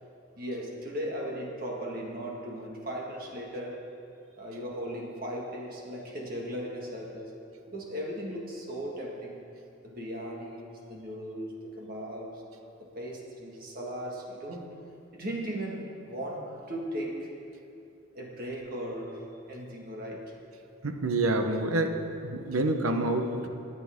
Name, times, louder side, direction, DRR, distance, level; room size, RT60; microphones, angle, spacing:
voice 1, 0.4-3.9 4.4-7.3 7.7-9.4 9.8-12.4 12.8-14.7 15.1-17.3 18.1-20.3, equal, 45° right, -2 dB, 1.8 m, -37 dB
voice 2, 20.8-22.0 22.2-23.5, right 2 dB, 90° right, 6 dB, 1.0 m, -27 dB
21.5 x 8.6 x 3.7 m, 2.6 s
head